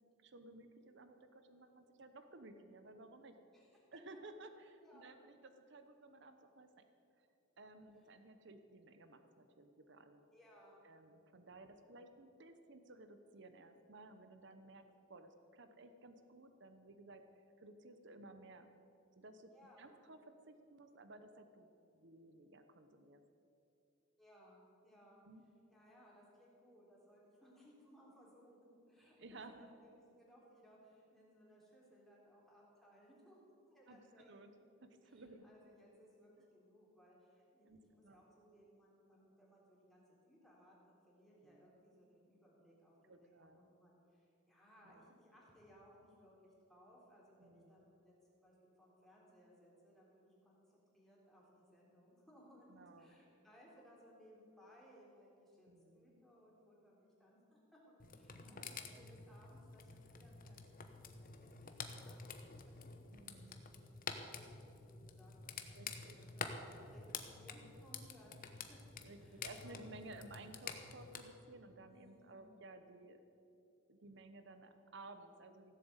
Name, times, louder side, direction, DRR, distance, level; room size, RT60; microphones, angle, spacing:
voice 1, 0.0-3.3 3.9-6.9 7.2-7.3 7.6-10.3 10.8-17.2 17.6-18.7 19.2-19.5 19.8-23.2 25.2-25.4 29.2-29.7 33.9-34.5 34.8-35.4 37.6-38.2 41.4-41.6 43.1-43.6 44.8-45.2 47.4-47.9 52.7-53.2 55.6-56.2 58.4-58.9 63.1-63.6 65.7-66.2 69.0-73.2 73.9-75.8, right 2 dB, 65° right, 8 dB, 0.9 m, -57 dB
voice 2, 4.8-5.1 10.3-10.8 19.5-20.0 24.2-25.2 25.7-33.4 33.7-34.3 35.0-64.5 64.8-66.5 66.8-68.8 69.2-70.1 71.9-72.5, equal, ahead, -5 dB, 3.5 m, -65 dB
sound 1, 58.0-71.2, left 5 dB, 45° left, 1.0 m, -49 dB
16.0 x 7.7 x 8.1 m, 2.7 s
head